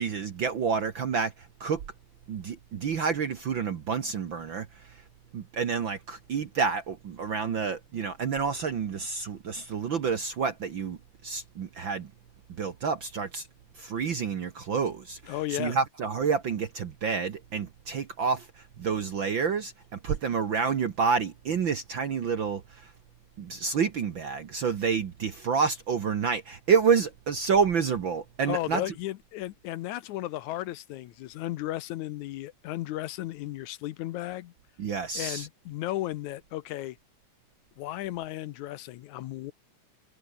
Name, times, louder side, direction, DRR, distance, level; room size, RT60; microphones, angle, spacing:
voice 1, 0.0-1.8 2.3-5.0 5.3-12.1 12.5-13.5 13.7-22.9 23.4-28.8 34.8-35.5, right 6 dB, 50° right, 1.5 m, -29 dB
voice 2, 15.3-15.8 28.5-34.5 35.2-37.0 37.8-39.5, left 15 dB, 75° left, 2.0 m, -34 dB
omnidirectional pair, 3.6 m